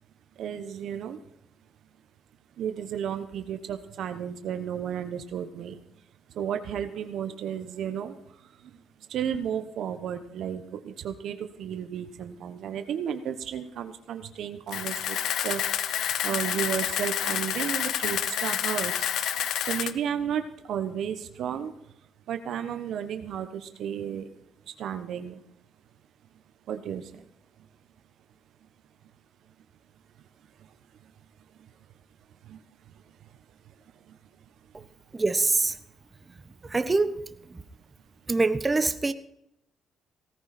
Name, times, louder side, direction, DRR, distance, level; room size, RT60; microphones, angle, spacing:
voice 1, 0.4-1.2 2.6-5.8 6.3-8.2 9.1-15.2 15.4-15.6 15.9-18.9 19.7-20.4 20.7-21.7 22.3-24.3 24.8-25.4 26.7-27.2 32.5-32.6, right 9 dB, 75° right, 1.2 m, -33 dB
Camera, 14.7-19.9, left 10 dB, 75° left, 0.9 m, -29 dB
voice 2, 35.1-35.8 36.6-37.2 37.5-37.6 38.3-39.1, right 3 dB, 25° right, 1.1 m, -24 dB
17.5 x 14.5 x 4.4 m
cardioid pair, 90°, 0 cm